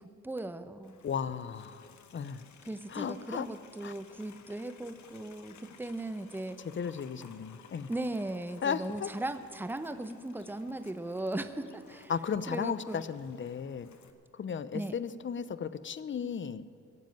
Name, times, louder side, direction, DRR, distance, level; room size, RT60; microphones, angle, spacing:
voice 1, 0.0-1.0 2.6-6.6 7.9-12.1 12.5-13.0 14.7-15.0, right 1 dB, 5° right, 10 dB, 0.8 m, -38 dB
Livestock farm animals working animals, 0.8-14.1, left 7 dB, 70° left, 1.1 m, -57 dB
voice 2, 1.0-2.4 2.9-3.5 3.8-3.9 6.7-7.9 8.6-9.1 12.1-13.9 14.3-16.6, left 7 dB, 40° left, 15 dB, 0.7 m, -35 dB
17.0 x 7.5 x 9.1 m, 2.4 s
cardioid pair, 70°, 30 cm